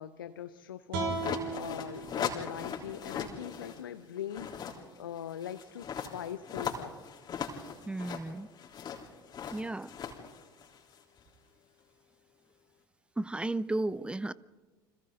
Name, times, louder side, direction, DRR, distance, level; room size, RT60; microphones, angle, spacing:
voice 1, 0.0-7.0, left 10 dB, 75° left, 0.8 m, -42 dB
sound 1, 0.9-4.1, right 4 dB, 65° right, 4.6 m, -39 dB
sound 2, 1.1-3.8 4.2-11.2, left 7 dB, 40° left, 3.5 m, -39 dB
voice 2, 7.9-8.5 9.5-9.9 13.2-14.3, right 2 dB, 10° right, 0.7 m, -33 dB
29.5 x 26.0 x 3.8 m
figure-of-eight pair, 65°, 11 cm